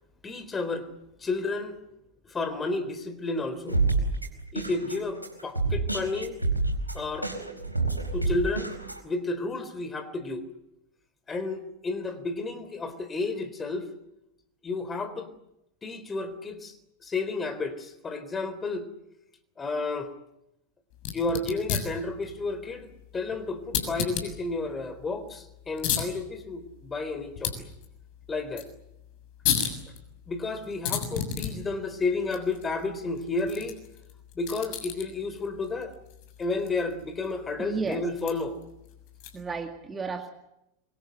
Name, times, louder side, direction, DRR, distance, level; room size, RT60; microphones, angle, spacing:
voice 1, 0.2-0.9 1.2-1.8 2.3-3.8 4.5-6.4 6.9-7.3 8.1-8.8 9.0-10.5 11.3-13.9 14.6-15.3 15.8-16.7 17.0-18.9 19.6-20.1 21.1-27.7 28.3-28.7 30.3-33.8 34.4-36.0 36.4-38.6, left 3 dB, 15° left, 10 dB, 3.6 m, -31 dB
sound 1, 3.7-9.0, right 3 dB, 90° right, 4.6 m, -28 dB
sound 2, 20.9-39.6, left 8 dB, 45° left, 6.8 m, -36 dB
voice 2, 37.6-38.0 39.3-40.3, right 5 dB, 15° right, 5 dB, 2.2 m, -33 dB
25.0 x 24.5 x 8.0 m, 0.84 s
figure-of-eight pair, 90°, 0 cm